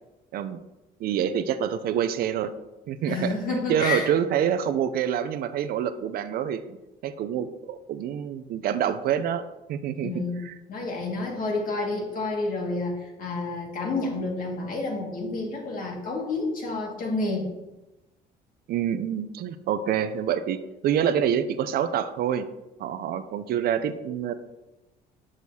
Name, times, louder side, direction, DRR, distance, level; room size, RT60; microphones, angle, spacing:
voice 1, 1.0-2.5 2.9-6.8 7.0-10.5 18.7-22.5 22.8-24.3, right 9 dB, 65° right, 11 dB, 0.5 m, -27 dB
voice 2, 3.1-4.1 10.0-10.4 10.7-17.5, left 3 dB, 55° left, -1 dB, 2.0 m, -29 dB
6.5 x 6.1 x 2.8 m, 1.0 s
cardioid pair, 110°, 17 cm